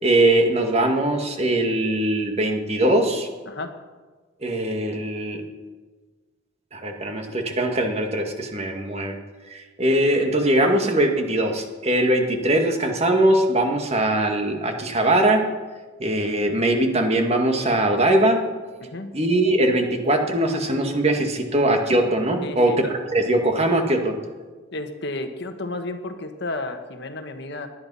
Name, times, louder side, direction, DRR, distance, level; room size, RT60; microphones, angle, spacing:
voice 1, 0.0-3.3 4.4-5.4 6.7-9.2 9.5-15.4 16.0-18.4 19.1-24.1, right 1 dB, 30° right, 4 dB, 1.9 m, -21 dB
voice 2, 18.8-19.1 22.4-22.9 24.7-27.7, left 2 dB, 60° left, 7 dB, 1.4 m, -32 dB
19.0 x 11.5 x 5.6 m, 1.3 s
head